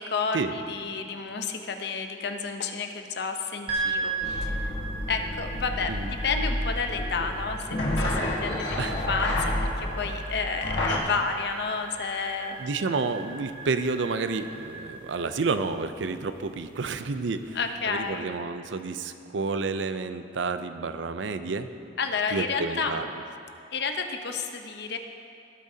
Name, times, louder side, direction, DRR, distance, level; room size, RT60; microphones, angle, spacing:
voice 1, 0.0-4.7 5.1-5.9 6.2-9.5 9.8-12.6 17.5-18.3 22.0-23.0 23.7-25.0, left 5 dB, 60° left, 5 dB, 0.8 m, -31 dB
sound 1, 3.7-18.0, right 3 dB, 30° right, 1.7 m, -38 dB
sound 2, 4.2-11.0, left 1 dB, 85° left, 1.5 m, -30 dB
voice 2, 12.6-17.6 17.9-21.7 22.3-23.1, right 4 dB, 80° right, 10 dB, 0.5 m, -30 dB
18.0 x 8.7 x 2.8 m, 2.6 s
head